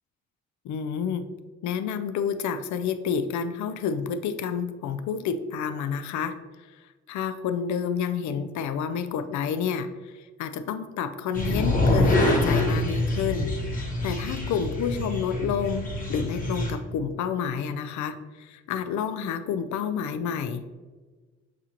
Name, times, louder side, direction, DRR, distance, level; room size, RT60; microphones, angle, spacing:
voice 1, 0.6-1.3 1.6-6.4 7.1-20.7, left 7 dB, 70° left, 10 dB, 0.4 m, -29 dB
sound 1, 11.3-16.7, left 1 dB, 25° left, 1.1 m, -25 dB
7.2 x 2.5 x 2.8 m, 1.3 s
cardioid pair, 90°, 30 cm